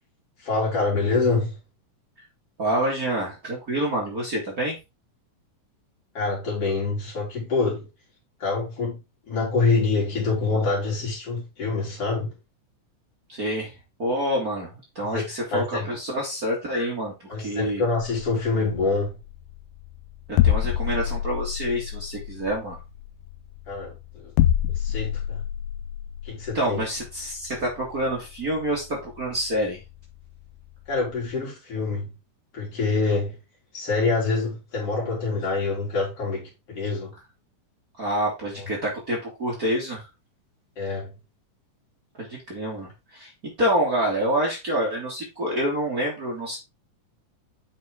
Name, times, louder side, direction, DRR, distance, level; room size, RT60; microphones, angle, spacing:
voice 1, 0.4-1.6 6.1-7.9 8.4-9.0 9.3-12.3 15.1-15.9 17.3-19.2 23.7-24.3 24.8-25.4 26.2-26.8 30.9-32.1 32.5-33.4 33.7-37.1 38.5-38.7 40.8-41.1, left 3 dB, 45° left, 4.5 m, -26 dB
voice 2, 2.6-4.8 13.3-13.7 14.0-17.1 17.4-17.8 20.4-22.8 26.5-29.8 38.0-40.1 42.2-46.6, right 1 dB, 30° right, 2.7 m, -27 dB
sound 1, 18.8-31.4, left 11 dB, 80° left, 2.0 m, -29 dB
8.3 x 5.9 x 3.7 m
omnidirectional pair, 3.6 m